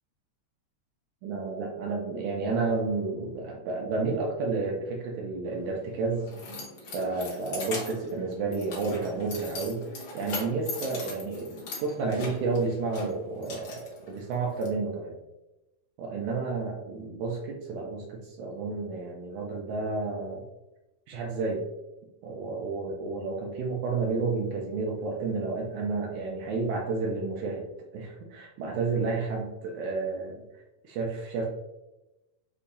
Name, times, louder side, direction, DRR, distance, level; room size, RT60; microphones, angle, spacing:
voice 1, 1.2-6.3 6.9-13.7 14.0-15.1 16.0-20.4 21.1-21.6 22.2-27.6 27.9-30.4 30.8-31.5, right 3 dB, 75° right, -1 dB, 1.9 m, -31 dB
Keys jangling, 5.6-14.7, left 3 dB, 75° left, 1.1 m, -40 dB
6.6 x 2.8 x 2.6 m, 0.99 s
omnidirectional pair, 3.9 m